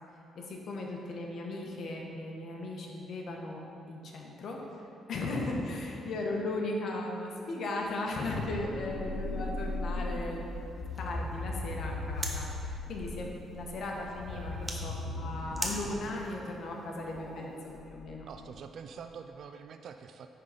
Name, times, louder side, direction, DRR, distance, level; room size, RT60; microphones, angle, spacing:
voice 1, 0.3-10.4 10.8-18.3, left 2 dB, 65° left, 0 dB, 1.2 m, -37 dB
sound 1, 8.3-16.1 17.0-18.8, left 2 dB, 90° left, 0.9 m, -38 dB
sound 2, 8.4-17.8, right 1 dB, 15° right, 1.0 m, -45 dB
voice 2, 14.3-14.9 18.2-20.3, right 6 dB, 65° right, 7 dB, 0.3 m, -46 dB
9.4 x 4.0 x 5.0 m, 3.0 s
cardioid pair, 90°, 0 cm